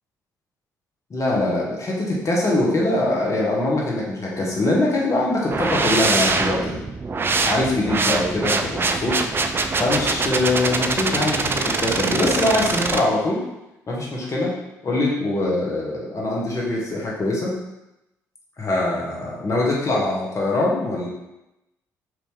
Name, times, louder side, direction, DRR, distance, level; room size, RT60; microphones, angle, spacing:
voice 1, 1.1-6.8 7.5-9.2 9.8-13.4 13.9-14.5 14.8-17.6 18.6-21.1, left 2 dB, 35° left, -3 dB, 1.0 m, -23 dB
sound 1, 5.5-13.0, right 3 dB, 25° right, 0.3 m, -23 dB
2.9 x 2.7 x 3.5 m, 0.92 s
figure-of-eight pair, 45°, 9 cm